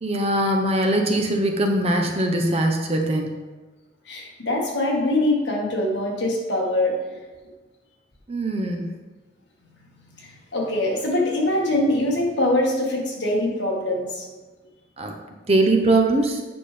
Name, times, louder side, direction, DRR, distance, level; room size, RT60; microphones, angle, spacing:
voice 1, 0.0-3.3 8.3-8.9 15.0-15.1 15.5-16.4, right 1 dB, 30° right, 3 dB, 0.8 m, -21 dB
voice 2, 4.1-7.0 9.8-14.2, left 1 dB, 65° left, -1 dB, 1.6 m, -23 dB
8.8 x 5.8 x 3.4 m, 1.3 s
head